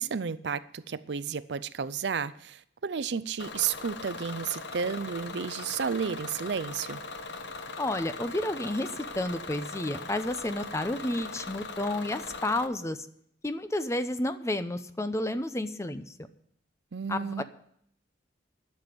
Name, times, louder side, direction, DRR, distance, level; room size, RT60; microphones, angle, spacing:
voice 1, 0.0-7.0 16.9-17.4, right 6 dB, 70° right, 0.5 m, -32 dB
Bus / Engine, 3.4-12.7, left 3 dB, 80° left, 1.0 m, -40 dB
voice 2, 7.8-13.0 13.4-16.1 17.1-17.4, left 1 dB, 15° left, 0.7 m, -31 dB
11.0 x 7.0 x 9.2 m
head